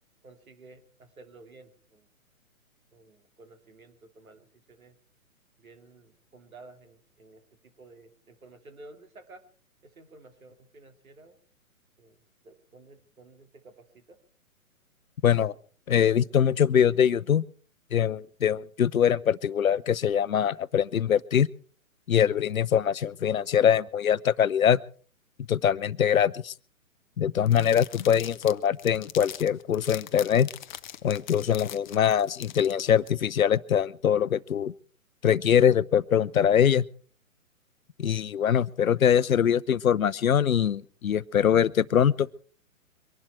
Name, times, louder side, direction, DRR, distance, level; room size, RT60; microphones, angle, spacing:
voice 1, 0.2-2.1 2.9-5.0 5.6-9.4 9.8-11.4 12.0-12.2 12.4-14.2, right 3 dB, 75° right, 7 dB, 3.0 m, -53 dB
voice 2, 15.2-15.5 15.9-17.4 17.9-21.5 22.1-24.8 25.5-26.5 27.2-30.5 31.0-34.7 35.2-36.8 38.0-42.3, left 8 dB, 70° left, 19 dB, 0.8 m, -23 dB
sound 1, 27.5-33.1, left 11 dB, 35° left, 0.6 m, -42 dB
23.5 x 11.5 x 4.5 m, 0.43 s
figure-of-eight pair, 130°, 42 cm